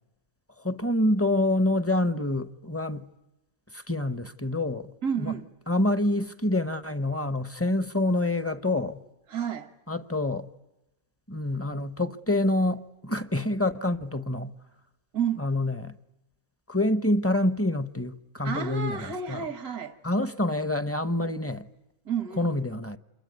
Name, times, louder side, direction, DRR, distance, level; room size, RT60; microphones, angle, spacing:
voice 1, 0.6-3.1 3.7-5.4 5.7-9.0 9.9-10.5 11.3-14.5 15.4-15.9 16.7-19.5 20.0-21.7 22.4-23.0, left 1 dB, 10° left, 0.8 m, -27 dB
voice 2, 5.0-5.5 9.3-9.7 15.1-15.5 18.4-20.0 22.1-22.6, right 7 dB, 80° right, 1.9 m, -31 dB
28.0 x 22.5 x 9.4 m
omnidirectional pair, 1.6 m